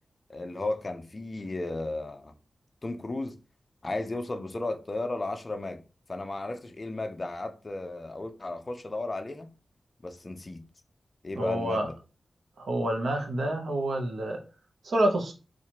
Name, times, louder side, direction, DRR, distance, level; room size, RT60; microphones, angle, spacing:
voice 1, 0.3-2.3 2.8-3.3 3.8-5.8 6.1-9.5 10.0-10.6 11.2-11.9, left 2 dB, 30° left, 0.4 m, -34 dB
voice 2, 11.4-11.9 12.6-14.4 14.8-15.3, right 1 dB, 75° right, 0.7 m, -28 dB
4.2 x 2.4 x 2.9 m
wide cardioid pair, 145°, 0 cm